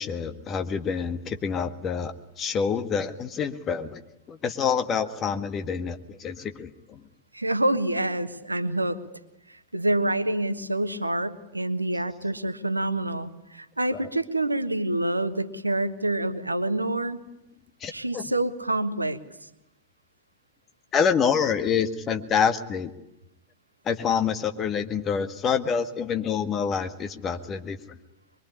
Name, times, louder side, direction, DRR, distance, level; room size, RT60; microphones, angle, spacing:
voice 1, 0.0-4.0 4.3-7.0 17.8-18.2 20.9-22.9 23.9-27.8, left 6 dB, 30° left, 9 dB, 1.8 m, -27 dB
voice 2, 7.3-9.0 9.5-17.2 17.9-19.2, right 1 dB, 85° right, 11 dB, 1.4 m, -27 dB
23.5 x 23.0 x 9.9 m, 0.88 s
figure-of-eight pair, 90°, 0 cm